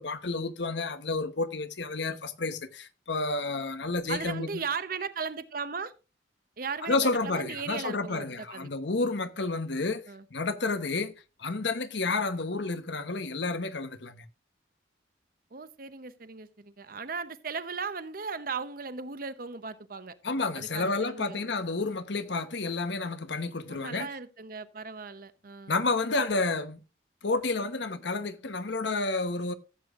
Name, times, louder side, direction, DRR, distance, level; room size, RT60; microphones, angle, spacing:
voice 1, 0.0-4.5 6.8-10.0 10.3-11.1 11.4-14.2 20.2-24.1 25.7-26.8 27.2-29.5, left 3 dB, 70° left, 1.1 m, -30 dB
voice 2, 4.1-5.9 6.6-8.7 10.1-10.2 15.5-20.1 20.5-21.5 23.7-25.7, right 5 dB, 50° right, 0.8 m, -37 dB
15.0 x 8.3 x 2.5 m
head